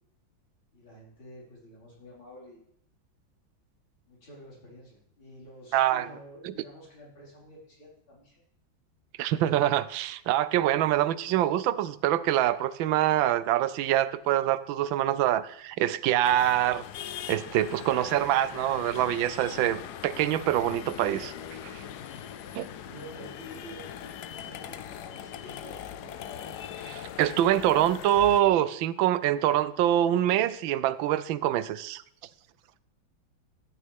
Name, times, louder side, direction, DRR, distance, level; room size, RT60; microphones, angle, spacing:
voice 1, 0.7-2.6 4.1-8.4 22.7-26.5, equal, 90° left, 5.7 m, -49 dB
voice 2, 5.7-6.1 6.4-6.5 9.2-16.8 17.3-21.3 22.5-22.7 26.9-32.0, right 12 dB, 80° right, 1.3 m, -25 dB
sound 1, 16.2-28.4, left 9 dB, 65° left, 1.1 m, -41 dB
14.0 x 9.4 x 3.5 m
omnidirectional pair, 2.1 m